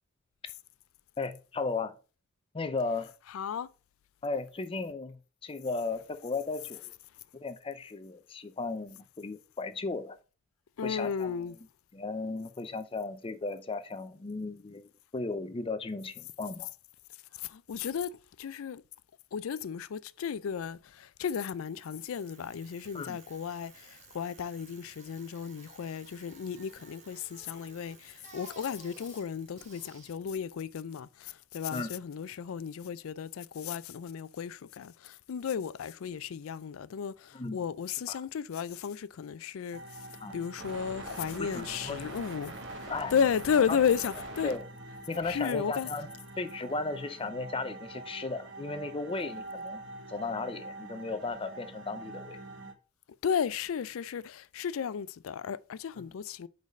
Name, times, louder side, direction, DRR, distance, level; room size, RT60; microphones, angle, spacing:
voice 1, 1.2-2.0 2.5-3.1 4.2-6.9 7.4-10.2 10.8-11.4 11.9-16.7 22.9-23.2 31.7-32.0 37.3-37.6 38.1-38.2 40.2-40.3 41.4-42.2 42.9-43.1 43.7-43.8 44.4-44.6 45.1-46.1 46.4-49.8 50.1-52.4, left 3 dB, 25° left, 0.5 m, -35 dB
voice 2, 3.3-3.7 10.8-11.5 17.3-18.8 19.3-44.5 45.2-45.9 53.2-56.5, left 7 dB, 75° left, 0.4 m, -34 dB
Bicycle, 21.3-31.4, right 4 dB, 35° right, 1.2 m, -56 dB
sound 1, 39.7-52.7, right 2 dB, 60° right, 1.1 m, -44 dB
5.1 x 4.0 x 5.2 m
head